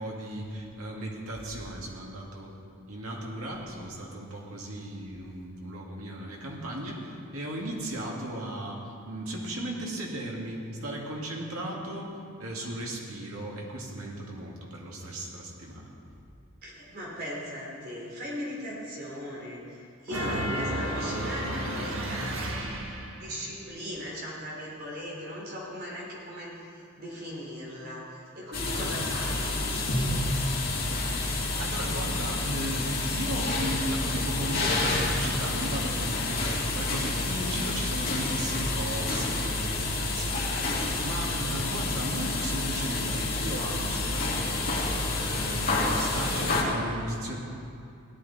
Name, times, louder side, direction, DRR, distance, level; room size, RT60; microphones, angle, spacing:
voice 1, 0.0-2.5 2.9-15.9 28.8-28.9 31.0-47.4, right 1 dB, 85° right, -2 dB, 2.2 m, -36 dB
voice 2, 16.6-22.6 23.2-30.2, equal, 45° right, -4 dB, 3.4 m, -39 dB
sound 1, 20.1-23.3, right 1 dB, 70° right, 1.5 m, -32 dB
sound 2, 28.5-46.6, left 2 dB, 45° left, 2.3 m, -29 dB
17.0 x 11.5 x 4.2 m, 2.5 s
head